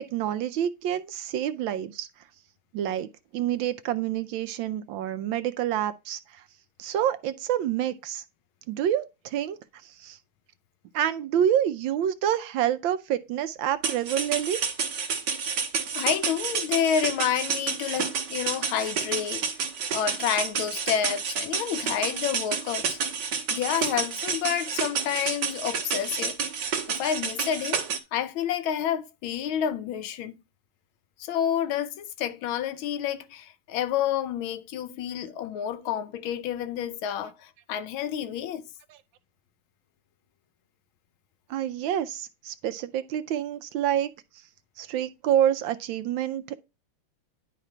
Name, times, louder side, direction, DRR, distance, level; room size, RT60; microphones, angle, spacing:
voice 1, 0.0-2.1 2.7-3.1 3.3-6.4 6.8-8.2 8.7-10.2 10.9-14.6 38.9-39.0 41.5-44.1 44.8-46.5, right 10 dB, 75° right, 1.2 m, -27 dB
sound 1, 13.8-28.0, right 6 dB, 60° right, 1.6 m, -30 dB
voice 2, 15.9-19.5 19.9-23.0 23.5-26.4 26.9-27.8 28.1-30.4 31.2-38.6, left 9 dB, 75° left, 1.4 m, -29 dB
10.0 x 3.9 x 4.3 m
omnidirectional pair, 2.3 m